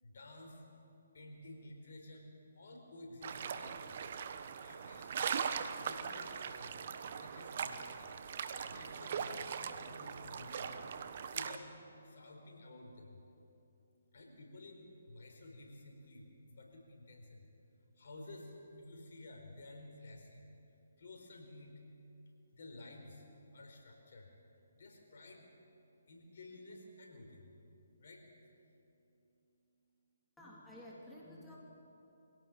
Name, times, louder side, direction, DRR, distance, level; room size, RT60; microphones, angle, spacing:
voice 1, 0.0-0.7 1.1-4.0 4.6-5.5 5.8-6.9 7.2-8.1 8.6-10.8 11.3-11.7 12.0-13.4 14.1-20.5 21.0-21.8 22.5-24.4 24.7-25.5 26.1-27.5 28.0-28.3, left 2 dB, 60° left, 1 dB, 4.4 m, -53 dB
sound 1, 3.2-11.6, right 7 dB, 45° right, 1.2 m, -40 dB
voice 2, 30.4-31.6, left 1 dB, 5° left, -5 dB, 3.2 m, -52 dB
24.0 x 17.0 x 7.5 m, 2.9 s
figure-of-eight pair, 145°, 0 cm